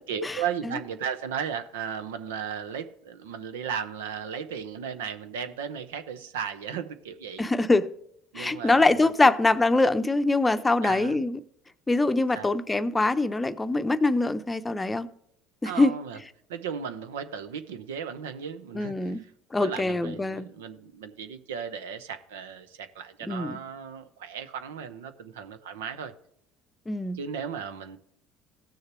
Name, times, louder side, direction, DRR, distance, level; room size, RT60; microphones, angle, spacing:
voice 1, 0.1-7.5 8.3-9.3 10.8-11.2 12.3-12.5 15.6-16.2 16.5-19.3 19.6-26.1 27.1-28.0, right 7 dB, 90° right, 10 dB, 0.7 m, -35 dB
voice 2, 7.4-7.9 8.4-11.4 11.9-15.1 15.6-15.9 18.7-19.2 19.5-20.5 23.3-23.6 26.9-27.2, left 2 dB, 15° left, 11 dB, 0.6 m, -23 dB
16.0 x 6.6 x 3.0 m, 0.71 s
hypercardioid pair, 80°, 0 cm